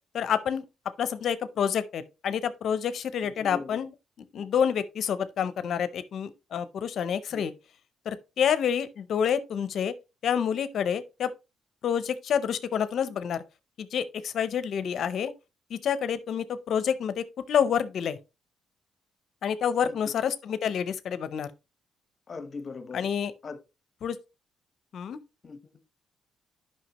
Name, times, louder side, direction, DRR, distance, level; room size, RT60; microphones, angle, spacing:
voice 1, 0.1-0.6 1.0-3.9 4.3-7.5 8.1-9.9 10.2-11.3 11.8-13.4 13.8-15.3 15.7-18.2 19.4-21.5 22.9-23.3 24.0-24.2 24.9-25.2, left 8 dB, 65° left, 0.6 m, -28 dB
voice 2, 3.4-3.8 7.3-7.4 19.8-20.0 22.3-23.1 23.4-23.6 25.4-25.6, left 4 dB, 40° left, 0.9 m, -39 dB
9.2 x 5.6 x 2.9 m
cardioid pair, 90°, 0 cm